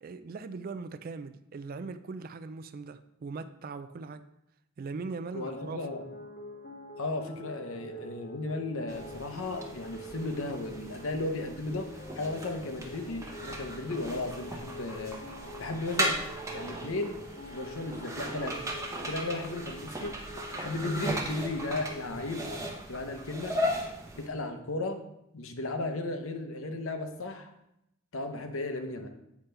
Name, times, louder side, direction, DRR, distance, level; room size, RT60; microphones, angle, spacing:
voice 1, 0.0-4.2 4.8-5.9, right 4 dB, 45° right, 12 dB, 0.3 m, -40 dB
voice 2, 5.3-6.0 7.0-15.2 15.6-16.2 16.5-17.2 17.5-18.7 19.0-20.2 20.5-22.4 22.9-23.6 24.1-25.0 25.3-27.5 28.1-29.1, left 2 dB, 75° left, 6 dB, 0.9 m, -35 dB
sound 1, 5.6-22.7, left 1 dB, 40° left, 0.8 m, -46 dB
sound 2, 8.9-24.3, equal, 15° right, 0.8 m, -37 dB
8.3 x 5.6 x 3.3 m, 0.82 s
head